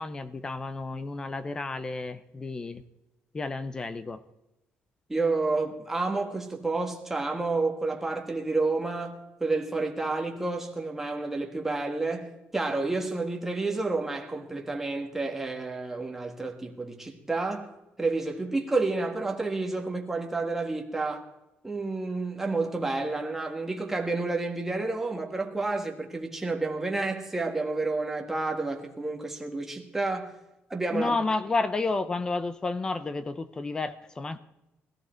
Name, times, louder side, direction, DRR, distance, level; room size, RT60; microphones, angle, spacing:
voice 1, 0.0-2.8 3.3-4.2 30.9-34.4, left 3 dB, 15° left, 0.7 m, -31 dB
voice 2, 5.1-17.7 18.0-21.3 21.6-30.3 30.7-31.1, right 3 dB, 10° right, 1.6 m, -30 dB
20.5 x 14.5 x 4.5 m
cardioid pair, 180°, 4 cm